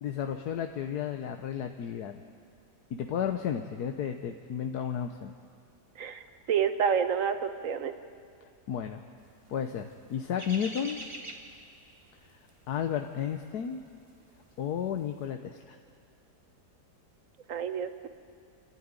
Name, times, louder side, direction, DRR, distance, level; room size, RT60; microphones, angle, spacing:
voice 1, 0.0-2.2 2.9-5.3 8.7-9.0 9.5-11.0 12.3-13.8 14.6-15.8, left 8 dB, 75° left, 5 dB, 1.4 m, -33 dB
voice 2, 6.5-7.9 17.5-18.1, right 7 dB, 55° right, 9 dB, 1.3 m, -28 dB
sound 1, 9.4-14.5 14.8-15.1, right 1 dB, 20° right, 1.7 m, -44 dB
29.0 x 12.5 x 9.6 m, 2.3 s
omnidirectional pair, 1.8 m